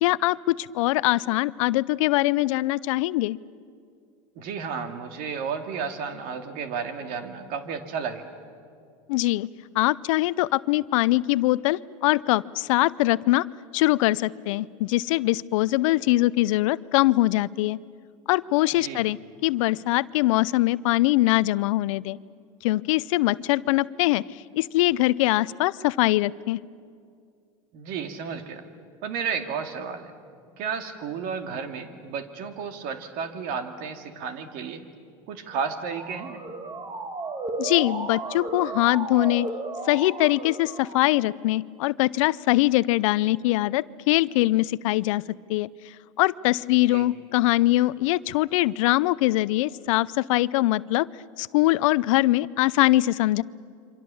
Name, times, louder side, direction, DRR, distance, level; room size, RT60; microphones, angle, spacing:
voice 1, 0.0-3.4 9.1-9.5 9.7-13.5 13.7-17.8 18.3-19.2 19.4-22.2 22.6-24.2 24.6-26.6 37.6-39.5 39.8-45.2 45.5-45.7 46.2-51.1 51.4-53.4, left 18 dB, 70° left, 20 dB, 0.6 m, -22 dB
voice 2, 4.4-8.3 18.8-19.1 27.7-28.6 29.0-30.2 30.6-34.8 35.3-36.4 46.9-47.1, right 6 dB, 55° right, 7 dB, 2.5 m, -32 dB
Motor vehicle (road) / Siren, 35.5-41.4, right 3 dB, 25° right, 2.1 m, -34 dB
27.5 x 25.0 x 7.1 m, 2.3 s
hypercardioid pair, 100°, 17 cm